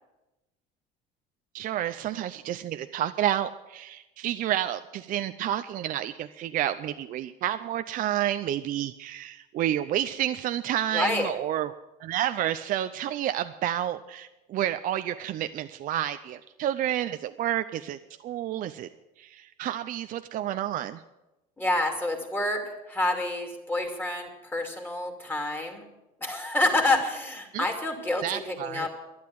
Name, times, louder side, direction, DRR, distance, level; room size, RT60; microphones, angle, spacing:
voice 1, 1.5-11.7 12.0-18.9 19.2-21.0 27.5-27.6 28.2-28.9, right 12 dB, 45° right, 10 dB, 0.6 m, -30 dB
voice 2, 10.9-11.3 21.6-25.9 26.2-28.9, left 2 dB, 10° left, 3 dB, 2.6 m, -28 dB
12.0 x 11.0 x 7.7 m, 0.99 s
cardioid pair, 125°, 19 cm